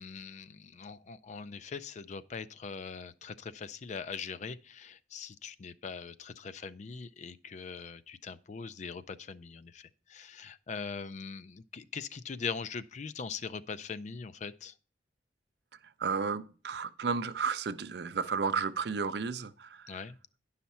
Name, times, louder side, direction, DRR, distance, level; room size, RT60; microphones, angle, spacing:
voice 1, 0.0-14.7 19.9-20.2, left 5 dB, 40° left, 0.4 m, -41 dB
voice 2, 16.0-20.0, right 5 dB, 65° right, 0.5 m, -33 dB
10.5 x 5.7 x 4.2 m
head